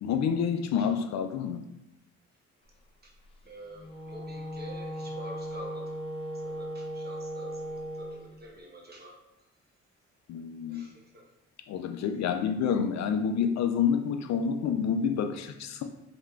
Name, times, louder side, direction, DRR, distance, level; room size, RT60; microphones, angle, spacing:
voice 1, 0.0-1.6 10.3-10.9 11.7-15.8, left 7 dB, 65° left, 7 dB, 0.4 m, -28 dB
voice 2, 3.4-9.2 10.7-11.3, equal, 35° right, -1 dB, 1.1 m, -48 dB
Wind instrument woodwind instrument, 3.7-8.2, equal, 20° left, 0.6 m, -37 dB
4.3 x 3.5 x 2.4 m, 0.87 s
cardioid pair, 90°, 30 cm